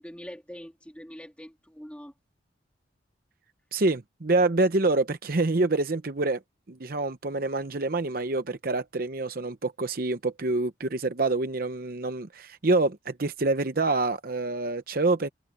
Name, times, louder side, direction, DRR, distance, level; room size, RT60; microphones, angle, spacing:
voice 1, 0.0-2.1, equal, 5° left, 3.3 m, -43 dB
voice 2, 3.7-6.4 6.7-15.3, right 2 dB, 50° right, 0.8 m, -26 dB
head